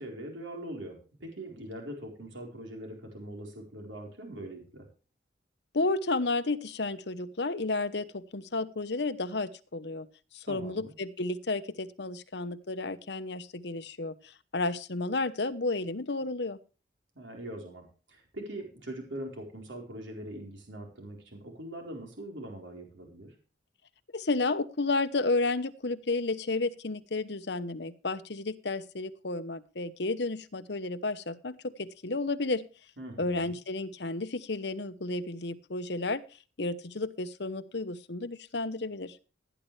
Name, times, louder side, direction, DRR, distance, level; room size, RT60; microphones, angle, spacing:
voice 1, 0.0-4.9 10.4-10.9 17.2-23.4 33.0-33.5, right 1 dB, 80° right, 2 dB, 4.1 m, -42 dB
voice 2, 5.7-10.1 10.3-16.6 24.1-32.6 33.2-36.2 36.6-39.2, left 3 dB, 65° left, 11 dB, 1.0 m, -32 dB
16.5 x 10.5 x 3.3 m, 0.35 s
head